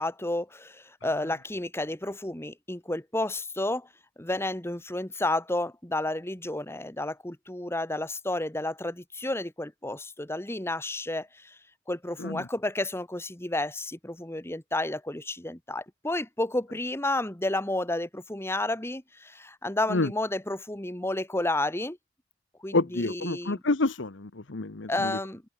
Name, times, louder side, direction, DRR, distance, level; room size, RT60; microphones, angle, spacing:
voice 1, 0.0-3.9 4.2-11.6 11.9-22.0 22.6-23.6 24.9-25.4, left 2 dB, 15° left, 1.5 m, -31 dB
voice 2, 22.7-25.1, left 2 dB, 70° left, 1.2 m, -28 dB
head